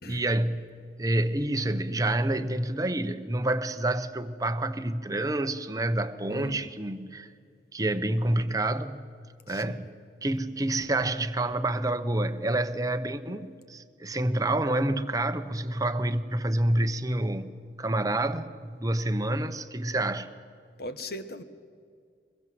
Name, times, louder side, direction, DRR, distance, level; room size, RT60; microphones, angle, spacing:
voice 1, 0.0-7.3 7.7-9.0 9.5-9.9 10.2-20.3, right 1 dB, 20° right, 1.0 m, -28 dB
voice 2, 6.3-6.7 9.5-9.9 20.8-21.4, left 1 dB, 60° left, 1.4 m, -39 dB
23.5 x 22.0 x 7.8 m
head